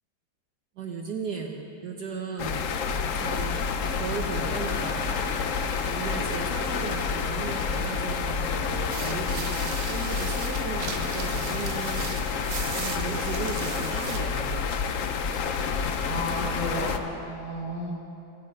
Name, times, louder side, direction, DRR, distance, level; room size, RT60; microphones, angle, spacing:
voice 1, 0.8-2.7 3.2-3.6 3.9-5.5 5.8-12.2 12.8-14.7, right 5 dB, 60° right, 2 dB, 1.4 m, -36 dB
sound 1, 2.4-17.0, left 5 dB, 65° left, 0.8 m, -29 dB
sound 2, 8.9-14.2, right 5 dB, 90° right, 0.5 m, -37 dB
voice 2, 15.7-17.9, equal, 15° left, -5 dB, 3.9 m, -33 dB
25.0 x 8.7 x 5.3 m, 2.6 s
omnidirectional pair, 2.2 m